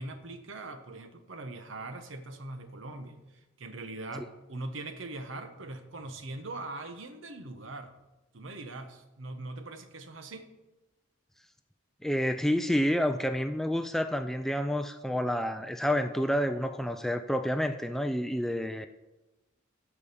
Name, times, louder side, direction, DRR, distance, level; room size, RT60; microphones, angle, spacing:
voice 1, 0.0-7.9 8.3-10.5, right 2 dB, 70° right, 8 dB, 1.1 m, -41 dB
voice 2, 12.0-18.9, equal, ahead, 8 dB, 0.3 m, -29 dB
12.5 x 4.9 x 6.8 m, 1.1 s
head